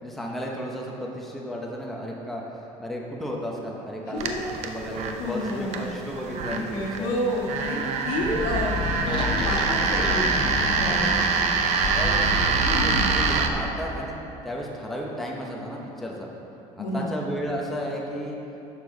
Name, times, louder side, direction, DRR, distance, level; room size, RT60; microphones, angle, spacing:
voice 1, 0.0-2.4 2.8-4.3 4.6-7.1 11.9-14.2 14.4-16.3 16.7-18.4, equal, ahead, -2 dB, 0.8 m, -33 dB
voice 2, 4.0-4.5 5.2-5.9 6.5-10.5 10.8-11.4 12.6-13.1 16.8-17.2, left 1 dB, 75° left, -2 dB, 1.8 m, -30 dB
sound 1, 4.2-13.5, right 5 dB, 60° right, 0.7 m, -26 dB
sound 2, 8.2-13.4, left 3 dB, 35° left, 0.9 m, -30 dB
11.0 x 6.8 x 3.9 m, 2.9 s
cardioid pair, 155°, 13 cm